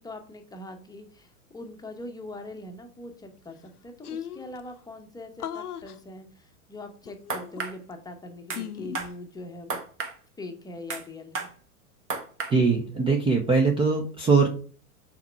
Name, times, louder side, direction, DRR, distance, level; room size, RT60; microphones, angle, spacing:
voice 1, 0.0-9.8 10.4-11.5, left 1 dB, 10° left, 4 dB, 0.9 m, -42 dB
sound 1, 3.4-3.5 3.7-3.8 4.0-4.6 5.4-6.0 7.1-7.9 8.5-9.1, left 10 dB, 90° left, 0.6 m, -37 dB
sound 2, 7.3-7.7 8.5-8.6 8.9-9.1 9.7-10.1 10.9-11.0 11.3-11.5 12.1-12.5, right 4 dB, 30° right, 1.2 m, -32 dB
voice 2, 12.5-14.5, right 4 dB, 10° right, 3 dB, 0.6 m, -21 dB
5.7 x 4.3 x 4.5 m, 0.40 s
hypercardioid pair, 100°, 44 cm